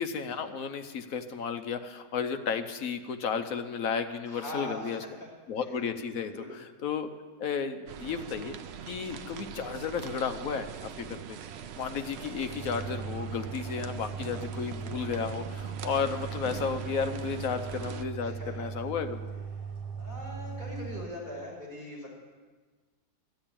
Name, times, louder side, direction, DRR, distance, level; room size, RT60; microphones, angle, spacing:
voice 1, 0.0-5.0 5.5-7.1 7.4-8.6 8.9-11.4 11.8-19.3, left 6 dB, 65° left, 8 dB, 1.1 m, -33 dB
voice 2, 4.3-5.3 6.2-6.6 13.2-13.4 18.2-18.7 20.0-22.1, left 1 dB, 25° left, -5 dB, 5.2 m, -41 dB
sound 1, 7.9-18.0, right 8 dB, 65° right, 0.6 m, -42 dB
sound 2, 12.4-21.1, right 6 dB, 85° right, 1.7 m, -39 dB
13.5 x 7.9 x 8.6 m, 1.3 s
omnidirectional pair, 1.7 m